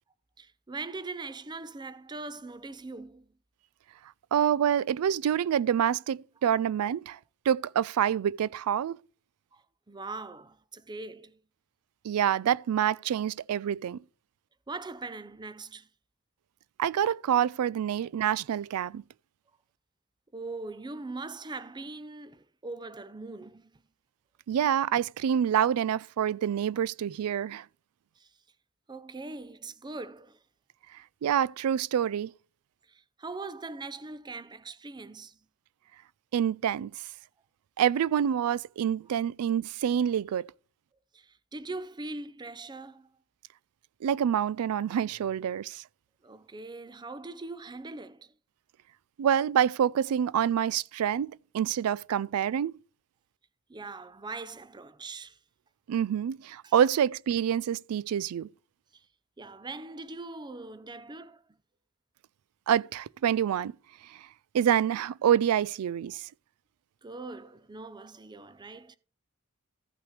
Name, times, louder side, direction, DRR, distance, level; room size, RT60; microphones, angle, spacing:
voice 1, 0.4-3.3 9.5-11.4 14.7-15.9 18.0-18.1 20.3-23.8 28.2-28.3 28.9-30.4 32.9-35.4 41.1-43.1 46.2-48.3 53.7-55.4 56.6-56.7 58.9-59.1 59.4-61.4 67.0-69.0, right 3 dB, 20° right, 0.5 m, -41 dB
voice 2, 4.3-7.2 7.5-9.0 12.0-14.0 16.8-19.0 24.5-27.6 31.2-32.3 36.3-36.9 37.8-40.5 44.0-45.8 49.2-52.7 55.9-58.5 62.7-63.8 64.5-66.3, right 9 dB, 75° right, 0.3 m, -27 dB
15.0 x 5.8 x 3.2 m
head